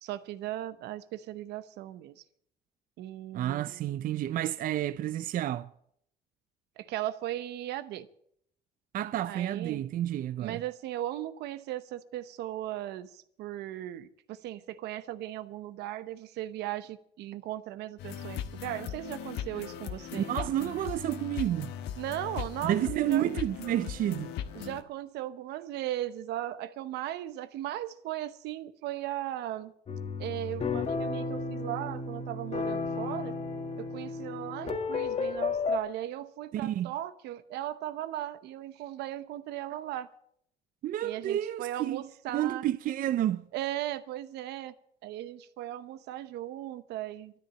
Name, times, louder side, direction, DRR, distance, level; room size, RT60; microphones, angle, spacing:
voice 1, 0.0-2.2 3.0-3.9 6.8-8.1 9.3-9.8 10.4-20.3 22.0-23.2 24.5-29.7 30.2-33.4 33.8-40.1 41.0-42.6 43.5-44.7 45.0-47.4, right 13 dB, 80° right, 0.9 m, -37 dB
voice 2, 3.3-5.7 8.9-10.6 20.1-21.7 22.6-24.3 36.5-36.9 40.8-43.4, right 12 dB, 55° right, 0.5 m, -30 dB
sound 1, 18.0-24.8, left 9 dB, 90° left, 1.2 m, -39 dB
sound 2, 29.9-35.8, left 4 dB, 40° left, 1.9 m, -33 dB
13.0 x 10.5 x 7.8 m
cardioid pair, 110°, 17 cm